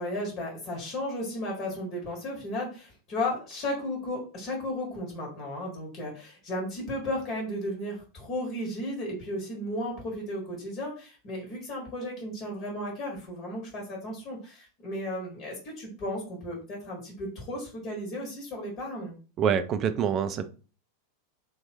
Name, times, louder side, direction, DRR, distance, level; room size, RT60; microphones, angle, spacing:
voice 1, 0.0-19.2, left 1 dB, 40° left, 1.7 m, -34 dB
voice 2, 19.4-20.5, right 8 dB, 35° right, 0.5 m, -26 dB
3.1 x 3.1 x 3.4 m
figure-of-eight pair, 90°, 0 cm